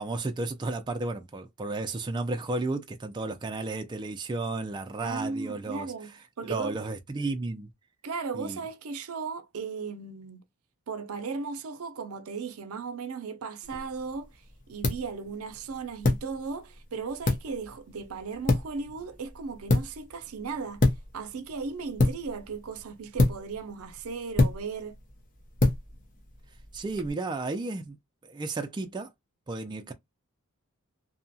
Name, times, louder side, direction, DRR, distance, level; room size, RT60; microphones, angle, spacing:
voice 1, 0.0-5.9 6.4-7.7 8.3-8.6 26.7-28.0 28.2-29.1 29.5-29.9, right 2 dB, 20° right, 0.3 m, -33 dB
voice 2, 5.0-6.1 6.4-6.7 8.0-10.4 10.9-14.4 14.7-20.9 21.1-25.0, right 5 dB, 75° right, 0.5 m, -36 dB
sound 1, 13.6-27.1, left 2 dB, 40° left, 0.7 m, -29 dB
2.8 x 2.2 x 2.6 m
head